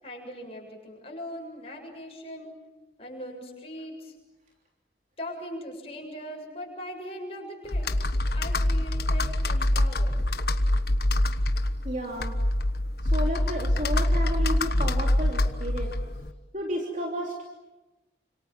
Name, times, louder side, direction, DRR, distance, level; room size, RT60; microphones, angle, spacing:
voice 1, 0.0-2.6 3.0-4.2 5.2-7.9 8.3-10.2, equal, 35° left, 0 dB, 7.4 m, -40 dB
Computer keyboard, 7.7-16.3, left 1 dB, 55° left, 1.3 m, -25 dB
voice 2, 11.8-12.4 13.0-16.0 16.5-17.4, equal, 45° right, 0 dB, 3.2 m, -32 dB
29.5 x 27.0 x 7.5 m, 1.1 s
head